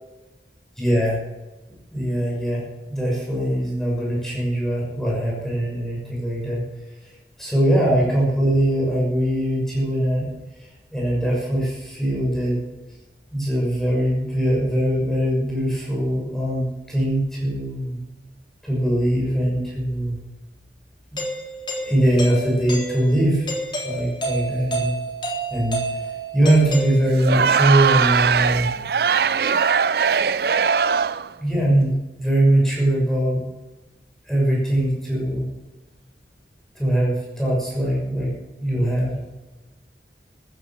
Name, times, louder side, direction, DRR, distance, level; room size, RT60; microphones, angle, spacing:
voice 1, 0.8-1.2 1.9-6.6 7.0-10.3 10.6-12.6 13.3-18.0 18.6-20.2 21.1-21.2 21.8-23.5 23.8-24.9 25.5-28.7 31.4-33.4 34.3-35.5 36.7-38.3 38.6-39.1, right 1 dB, ahead, -4 dB, 6.4 m, -21 dB
Doorbell, 21.2-27.5, right 1 dB, 25° left, 3.6 m, -30 dB
Crowd, 27.1-31.3, right 6 dB, 60° right, 0.4 m, -20 dB
14.5 x 11.5 x 7.5 m, 1.1 s
head